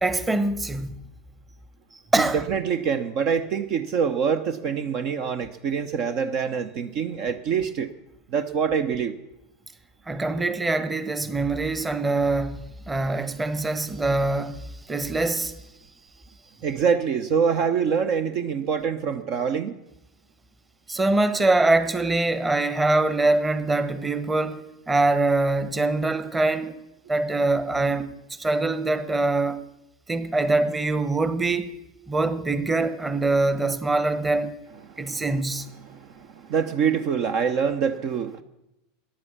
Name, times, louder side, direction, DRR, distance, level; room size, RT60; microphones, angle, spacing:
voice 1, 0.0-1.0 2.1-2.4 10.1-15.5 20.9-26.7 27.1-29.6 30.1-31.7 32.1-34.6 35.0-35.7, right 2 dB, 15° right, 1.1 m, -24 dB
voice 2, 2.2-7.9 8.3-9.1 16.6-19.7 34.9-35.2 35.8-38.4, right 6 dB, 50° right, 0.8 m, -25 dB
14.5 x 10.0 x 7.3 m
figure-of-eight pair, 85°, 0 cm